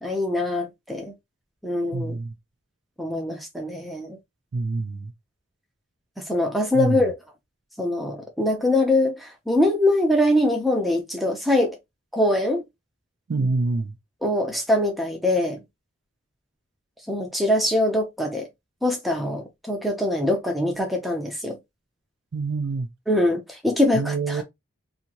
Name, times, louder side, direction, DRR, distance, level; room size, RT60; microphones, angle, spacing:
voice 1, 0.0-1.1 1.6-2.2 3.0-4.2 6.3-7.1 7.8-11.8 12.1-12.6 14.2-15.6 17.1-18.5 18.8-21.6 23.1-24.4, left 1 dB, ahead, 0.6 m, -23 dB
voice 2, 1.9-2.3 4.5-5.1 6.7-7.0 13.3-13.9 22.3-22.9 23.9-24.4, right 3 dB, 55° right, 0.4 m, -26 dB
2.7 x 2.5 x 2.8 m
head